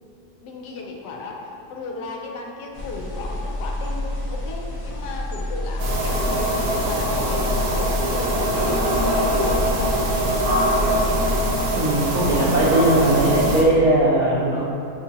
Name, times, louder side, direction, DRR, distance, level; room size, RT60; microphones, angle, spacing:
voice 1, 0.4-10.1, left 3 dB, 80° left, 0 dB, 1.2 m, -35 dB
sound 1, 2.7-11.5, left 1 dB, 55° left, 0.3 m, -29 dB
sound 2, 5.8-13.6, equal, 65° right, 1.1 m, -22 dB
voice 2, 11.8-14.6, right 1 dB, 90° right, -9 dB, 0.3 m, -19 dB
6.8 x 2.7 x 2.7 m, 2.7 s
omnidirectional pair, 1.8 m